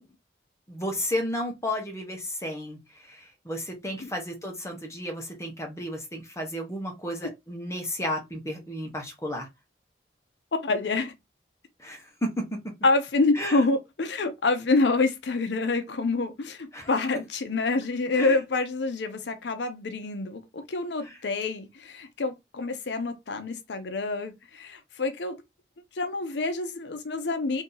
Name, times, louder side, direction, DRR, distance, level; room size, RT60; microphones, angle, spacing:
voice 1, 0.7-9.5 11.8-12.6 13.3-13.6 16.7-16.9 18.2-18.4, equal, 15° left, 0.9 m, -33 dB
voice 2, 10.6-11.1 12.8-25.4 25.9-27.6, left 3 dB, 75° left, 0.6 m, -27 dB
2.7 x 2.7 x 3.7 m
head